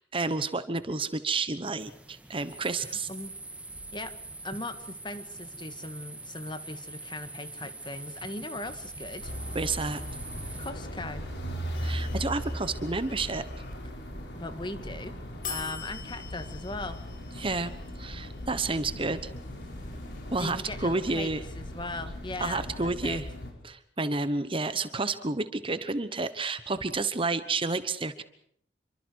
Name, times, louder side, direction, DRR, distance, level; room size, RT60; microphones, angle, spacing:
voice 1, 0.1-3.1 9.5-10.0 11.8-13.4 17.4-17.7 18.0-19.3 20.3-21.4 22.4-23.3 23.6-28.2, right 3 dB, 30° right, 12 dB, 1.1 m, -30 dB
sound 1, 1.8-10.7, right 2 dB, 10° right, 1.6 m, -43 dB
voice 2, 4.4-9.3 10.6-11.2 14.3-15.2 15.5-17.0 20.4-23.2, left 2 dB, 25° left, 9 dB, 1.9 m, -39 dB
sound 2, 9.2-23.5, equal, 80° left, 5.5 m, -38 dB
sound 3, 11.7-13.7 15.4-21.5, left 5 dB, 50° left, 5.0 m, -46 dB
28.0 x 24.5 x 4.7 m, 0.66 s
head